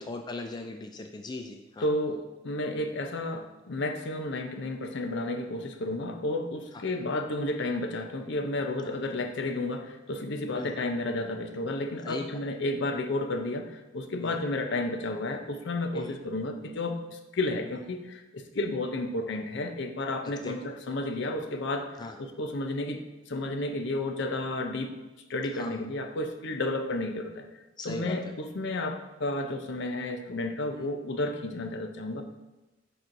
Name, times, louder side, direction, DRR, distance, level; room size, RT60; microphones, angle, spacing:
voice 1, 0.1-1.9 8.8-8.9 10.5-10.7 12.0-12.2 14.2-14.4 15.9-16.1 20.4-20.5 22.0-22.1 25.5-25.8 27.8-28.2, left 3 dB, 20° left, 4 dB, 0.3 m, -38 dB
voice 2, 1.8-21.9 22.2-25.0 25.3-27.5 27.8-32.2, left 2 dB, 60° left, 6 dB, 0.6 m, -32 dB
10.5 x 4.3 x 2.6 m, 1.1 s
head